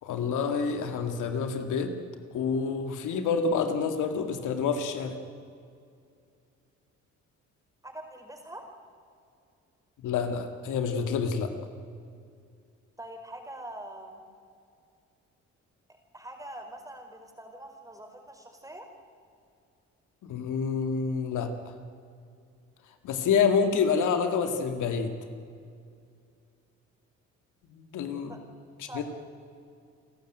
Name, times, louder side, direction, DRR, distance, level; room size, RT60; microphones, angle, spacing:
voice 1, 0.0-1.9 2.3-5.2 10.0-11.5 20.2-21.5 23.0-25.1 27.7-28.3 28.8-29.0, left 5 dB, 80° left, 7 dB, 2.2 m, -28 dB
voice 2, 7.8-8.6 13.0-14.2 16.1-18.9 28.3-28.4 28.9-29.0, right 1 dB, 10° right, 4 dB, 4.9 m, -43 dB
28.5 x 13.0 x 9.2 m, 2.3 s
cardioid pair, 90°, 30 cm